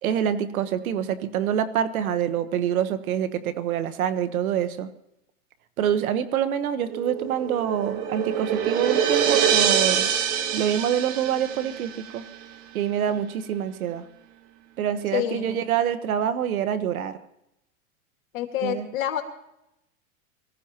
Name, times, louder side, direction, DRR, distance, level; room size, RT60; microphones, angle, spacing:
voice 1, 0.0-4.9 5.8-10.1 10.5-12.2 12.7-14.0 14.8-17.2 18.6-18.9, right 9 dB, 85° right, 12 dB, 1.3 m, -26 dB
sound 1, 6.8-12.1, right 8 dB, 40° right, 1.7 m, -25 dB
voice 2, 15.1-15.7 18.3-19.2, left 11 dB, 70° left, 3 dB, 2.6 m, -28 dB
24.0 x 14.5 x 3.0 m, 0.84 s
supercardioid pair, 140°, 42 cm